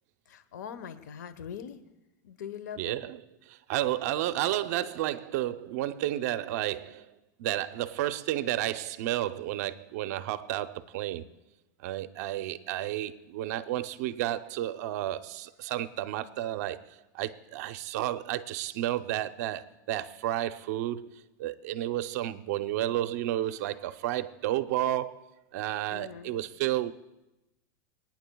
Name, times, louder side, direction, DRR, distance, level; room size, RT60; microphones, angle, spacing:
voice 1, 0.3-1.8 2.2-3.0 25.9-26.3, left 8 dB, 90° left, 1.0 m, -42 dB
voice 2, 2.8-7.1 7.4-11.3 11.8-16.8 17.1-21.1 21.4-25.2 25.5-26.9, right 14 dB, 65° right, 0.7 m, -31 dB
27.0 x 9.6 x 2.3 m
supercardioid pair, 135°, 9 cm